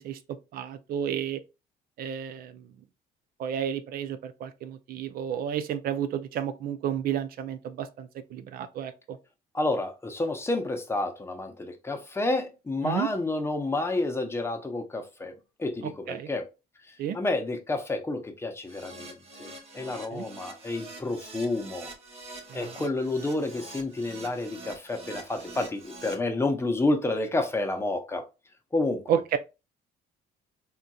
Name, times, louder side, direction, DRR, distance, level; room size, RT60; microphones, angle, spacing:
voice 1, 0.0-1.4 2.0-2.7 3.4-9.2 12.8-13.1 16.1-16.3 17.0-17.2 20.1-20.3 22.5-22.7 29.1-29.4, right 9 dB, 60° right, 0.4 m, -31 dB
voice 2, 9.5-16.5 16.9-21.9 22.5-28.2 28.7-29.0, left 2 dB, 15° left, 0.6 m, -30 dB
Keyboard (musical), 18.6-26.1, right 2 dB, 35° right, 1.0 m, -45 dB
3.7 x 2.7 x 2.2 m
cardioid pair, 110°, 17 cm